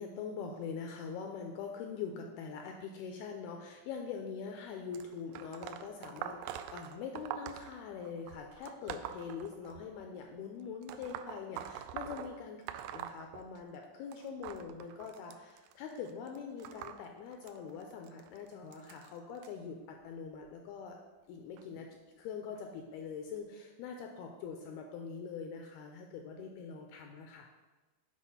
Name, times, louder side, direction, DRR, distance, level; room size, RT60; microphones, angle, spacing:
voice 1, 0.0-12.6 12.9-21.0 21.3-21.9 22.1-27.5, left 6 dB, 85° left, 3 dB, 2.3 m, -43 dB
sound 1, 4.9-10.1 10.8-13.9 14.1-19.5 20.3-20.5 21.6-21.7 22.6-22.7 23.4-23.5, right 10 dB, 85° right, 2.5 m, -45 dB
8.3 x 5.2 x 5.4 m, 1.2 s
omnidirectional pair, 5.0 m